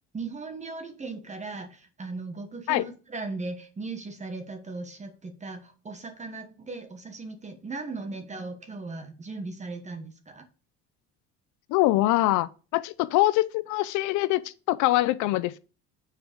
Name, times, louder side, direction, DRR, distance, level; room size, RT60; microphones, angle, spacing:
voice 1, 0.1-10.5, right 3 dB, 25° right, 1.2 m, -38 dB
voice 2, 11.7-15.6, left 17 dB, 80° left, 0.5 m, -24 dB
7.6 x 4.5 x 5.1 m
cardioid pair, 110°, 29 cm